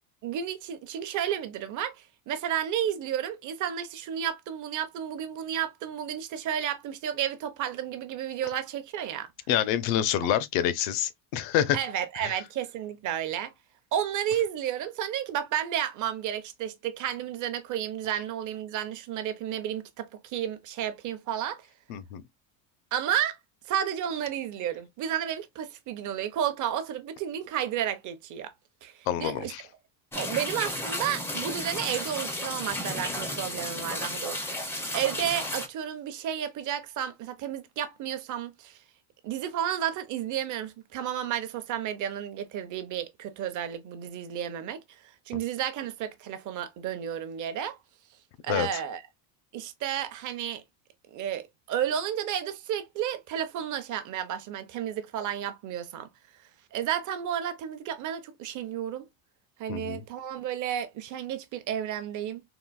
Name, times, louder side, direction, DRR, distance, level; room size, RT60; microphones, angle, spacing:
voice 1, 0.2-2.0 2.3-9.3 11.7-13.5 13.9-21.6 22.9-23.4 23.7-28.5 28.8-28.9 29.2-29.5 30.1-34.4 34.9-38.8 39.2-44.8 45.3-47.8 48.4-49.0 49.5-50.6 51.1-56.1 56.7-59.1 59.6-62.4, right 10 dB, 40° right, 0.7 m, -32 dB
voice 2, 9.5-11.8 12.2-12.4 21.9-22.2 29.1-29.6 48.5-48.8 59.7-60.0, left 10 dB, 70° left, 0.7 m, -27 dB
sound 1, 30.1-35.7, left 1 dB, 5° left, 0.4 m, -33 dB
3.8 x 2.5 x 2.3 m
cardioid pair, 130°, 49 cm